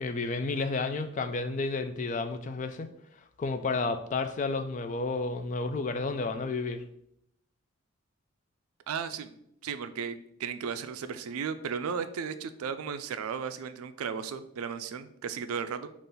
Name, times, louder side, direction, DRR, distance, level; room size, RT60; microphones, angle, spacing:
voice 1, 0.0-2.9 3.4-6.8, left 3 dB, 35° left, 8 dB, 0.3 m, -31 dB
voice 2, 8.9-9.3 9.6-15.9, right 6 dB, 85° right, 11 dB, 0.4 m, -35 dB
5.3 x 2.5 x 3.8 m, 0.74 s
head